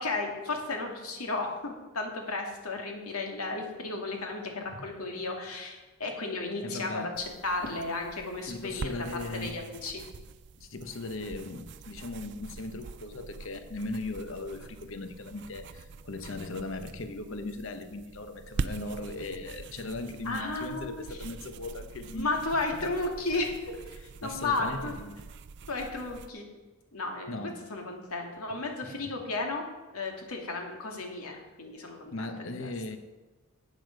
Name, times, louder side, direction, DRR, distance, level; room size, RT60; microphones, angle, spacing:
voice 1, 0.0-8.9 9.3-10.0 20.2-21.2 22.1-23.6 24.2-25.0 25.7-26.5 26.9-27.3 27.7-29.6 29.9-32.7, left 3 dB, 85° left, 2.3 m, -34 dB
voice 2, 6.6-7.2 8.5-9.8 10.6-22.3 22.8-22.9 24.2-25.2 27.3-27.6 32.1-33.0, left 2 dB, 60° left, 0.9 m, -38 dB
sound 1, 7.1-26.3, right 4 dB, 50° right, 0.4 m, -44 dB
12.5 x 8.5 x 5.2 m
head